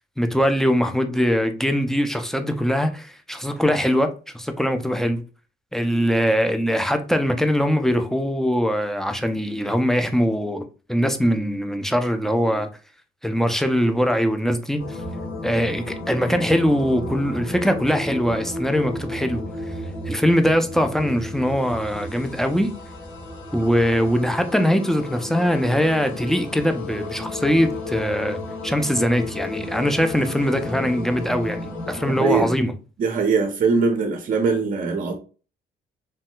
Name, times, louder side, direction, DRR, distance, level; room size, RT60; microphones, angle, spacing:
voice 1, 0.2-5.2 5.7-12.7 13.2-15.0 15.4-19.4 20.1-22.7 23.5-32.7, equal, ahead, 0.4 m, -22 dB
sound 1, 14.8-32.4, left 2 dB, 90° left, 1.1 m, -33 dB
voice 2, 32.1-32.5 33.0-35.1, right 4 dB, 45° right, 0.6 m, -21 dB
3.2 x 2.7 x 2.2 m
cardioid pair, 90°, 20 cm